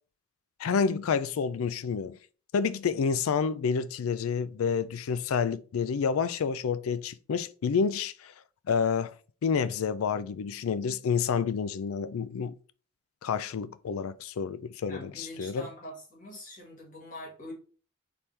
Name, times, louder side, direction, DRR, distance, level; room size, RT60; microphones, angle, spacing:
voice 1, 0.6-2.2 2.5-8.3 8.7-9.1 9.4-12.5 13.2-15.7, left 6 dB, 85° left, 0.4 m, -29 dB
voice 2, 14.8-17.5, left 1 dB, 40° left, 1.8 m, -44 dB
4.3 x 3.5 x 3.2 m
head